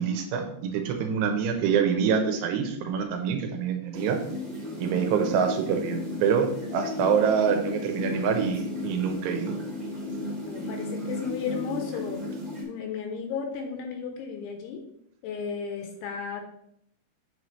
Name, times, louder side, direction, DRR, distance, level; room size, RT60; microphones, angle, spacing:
voice 1, 0.0-4.2 4.8-9.6, right 7 dB, 75° right, 4 dB, 2.7 m, -26 dB
sound 1, 3.9-12.6, left 1 dB, 25° right, 1.0 m, -34 dB
voice 2, 10.4-12.3 12.6-14.8 15.2-16.4, left 6 dB, 80° left, 4 dB, 2.9 m, -34 dB
8.2 x 6.5 x 3.2 m, 0.74 s
omnidirectional pair, 5.7 m